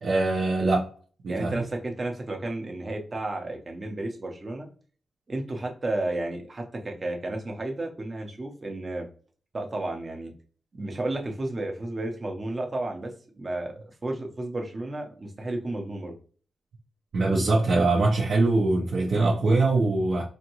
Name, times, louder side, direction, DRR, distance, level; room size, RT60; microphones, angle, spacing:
voice 1, 0.0-0.9 1.2-1.6 17.1-20.2, right 2 dB, 65° right, -3 dB, 0.8 m, -23 dB
voice 2, 1.3-4.7 5.3-9.1 9.5-10.3 10.7-16.1, right 2 dB, 30° right, 2 dB, 0.8 m, -32 dB
4.3 x 2.6 x 3.0 m, 0.41 s
wide cardioid pair, 110°, 0 cm